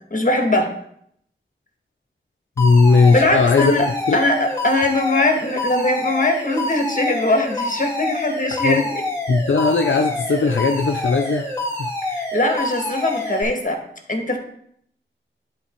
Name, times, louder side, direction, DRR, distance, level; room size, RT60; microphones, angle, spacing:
voice 1, 0.1-0.7 3.1-3.9 4.1-8.9 12.1-13.8 14.1-14.4, left 2 dB, 40° left, 3 dB, 1.6 m, -21 dB
voice 2, 2.6-4.2 8.5-8.8 9.3-11.5 11.8-11.9, left 4 dB, 70° left, 4 dB, 0.6 m, -17 dB
Alarm, 2.6-13.4, left 1 dB, 15° left, 2.2 m, -27 dB
10.0 x 3.8 x 4.5 m, 0.69 s
wide cardioid pair, 50°, 21 cm